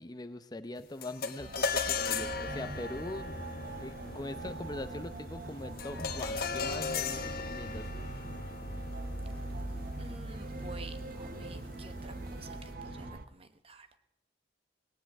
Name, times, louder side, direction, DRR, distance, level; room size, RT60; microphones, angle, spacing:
voice 1, 0.0-3.3 3.7-7.9, left 2 dB, 25° left, 10 dB, 0.7 m, -42 dB
sound 1, 1.0-10.5, left 5 dB, 60° left, 1.3 m, -37 dB
sound 2, 1.4-13.3, right 2 dB, 55° right, 0.7 m, -43 dB
Boat Water vehicle, 2.1-13.1, equal, 90° right, 3.5 m, -45 dB
voice 2, 10.0-13.9, right 3 dB, 35° right, 9 dB, 1.1 m, -50 dB
18.5 x 18.0 x 3.6 m, 0.87 s
head